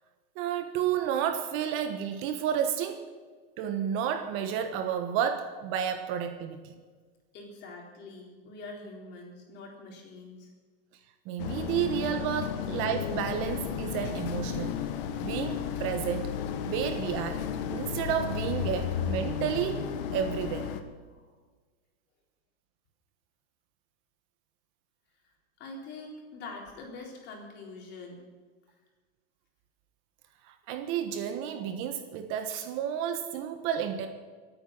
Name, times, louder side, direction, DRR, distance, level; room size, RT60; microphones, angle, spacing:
voice 1, 0.3-3.1 3.6-6.7 11.2-14.8 15.2-16.3 16.7-17.4 17.7-20.7 30.4-34.1, right 9 dB, 40° right, 7 dB, 1.3 m, -31 dB
voice 2, 7.3-10.5 21.1-21.3 25.6-28.2, left 3 dB, 35° left, 0 dB, 4.2 m, -44 dB
sound 1, 11.4-20.8, left 8 dB, 60° left, 1.4 m, -33 dB
24.0 x 9.0 x 6.1 m, 1.4 s
supercardioid pair, 155°, 31 cm